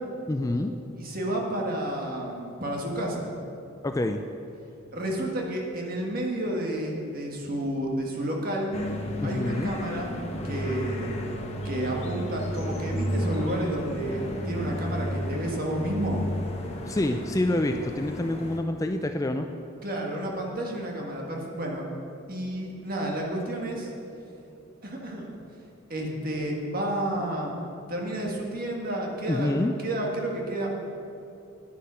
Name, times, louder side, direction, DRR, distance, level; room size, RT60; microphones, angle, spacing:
voice 1, 0.3-0.7 3.8-4.2 9.2-9.7 16.9-19.5 29.3-29.7, left 1 dB, 15° left, 6 dB, 0.3 m, -27 dB
voice 2, 1.0-3.3 4.9-8.7 9.2-10.2 10.4-11.1 11.6-16.2 19.8-21.9 22.3-23.9 24.8-25.4 25.9-27.5 27.9-30.7, right 1 dB, 45° right, 0 dB, 1.7 m, -31 dB
sound 1, 8.7-18.6, equal, 30° left, 1.0 m, -32 dB
10.0 x 9.5 x 5.7 m, 2.7 s
head